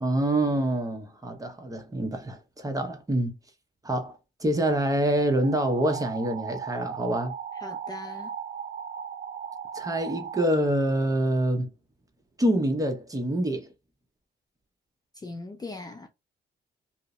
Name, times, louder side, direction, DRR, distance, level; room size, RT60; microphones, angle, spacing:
voice 1, 0.0-3.3 3.8-4.1 4.4-7.3 9.7-11.7 12.4-13.7, right 1 dB, 15° right, 0.8 m, -26 dB
sound 1, 5.4-10.4, right 8 dB, 45° right, 0.5 m, -37 dB
voice 2, 7.6-8.3 15.1-16.1, left 3 dB, 20° left, 0.4 m, -40 dB
2.6 x 2.0 x 2.3 m
cardioid pair, 90°, 20 cm